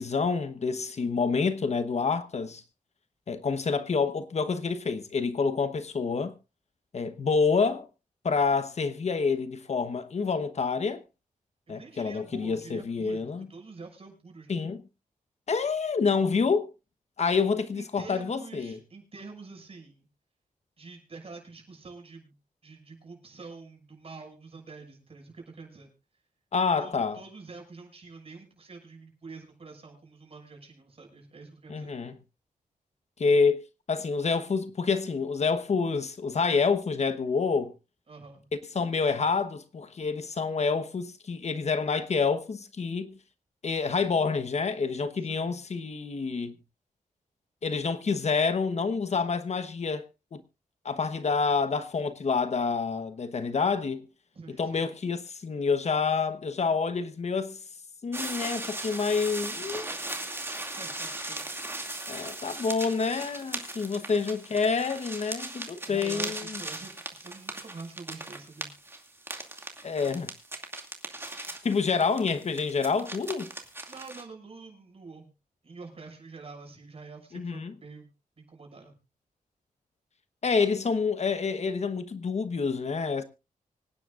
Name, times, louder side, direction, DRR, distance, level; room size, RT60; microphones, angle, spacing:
voice 1, 0.0-2.6 3.3-6.3 6.9-7.9 8.2-11.0 11.7-13.5 14.5-14.8 15.5-16.7 17.2-18.8 26.5-27.2 31.7-32.1 33.2-33.6 33.9-37.7 38.7-43.1 43.6-46.6 47.6-50.1 50.3-50.4 50.8-54.1 54.6-57.6 58.0-59.9 62.1-66.6 69.8-70.3 71.5-73.5 77.3-77.7 80.4-83.2, left 5 dB, 55° left, 1.1 m, -28 dB
voice 2, 11.7-14.6 17.7-20.1 20.8-22.3 22.6-25.9 26.8-31.9 38.1-38.5 45.2-45.6 54.3-54.9 60.5-61.5 65.8-68.7 73.9-75.3 75.6-78.1 78.4-79.0, right 4 dB, 45° right, 6.5 m, -46 dB
sound 1, 58.1-74.2, right 2 dB, 15° right, 2.4 m, -38 dB
25.0 x 10.0 x 2.5 m
wide cardioid pair, 100°, 14 cm